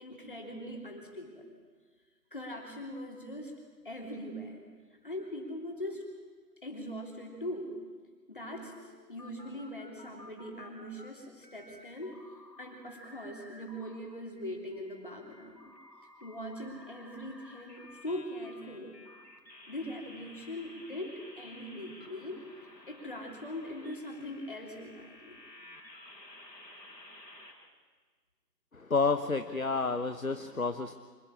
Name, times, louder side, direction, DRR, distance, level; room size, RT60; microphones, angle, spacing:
voice 1, 0.0-1.5 2.3-3.5 3.8-4.6 5.0-6.1 6.6-7.8 8.3-12.2 12.6-15.7 16.2-18.9 19.7-22.4 22.9-25.4, left 1 dB, 30° left, 1 dB, 3.2 m, -41 dB
sound 1, 8.4-11.1 11.4-14.0 14.4-27.5, left 1 dB, 80° left, 4.8 m, -54 dB
voice 2, 28.7-30.9, left 4 dB, 55° left, 9 dB, 1.0 m, -30 dB
26.0 x 14.0 x 8.7 m, 1.5 s
figure-of-eight pair, 175°, 50 cm